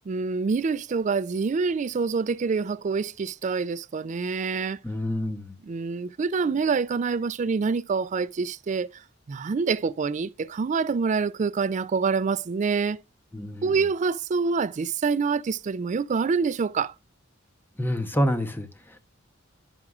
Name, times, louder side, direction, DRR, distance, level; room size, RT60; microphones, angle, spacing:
voice 1, 0.1-4.8 5.6-9.0 9.3-13.0 13.6-16.9, right 5 dB, 35° right, 0.3 m, -26 dB
voice 2, 4.8-5.5 13.3-13.7 17.8-19.0, equal, 10° left, 0.8 m, -28 dB
10.5 x 6.0 x 2.4 m
head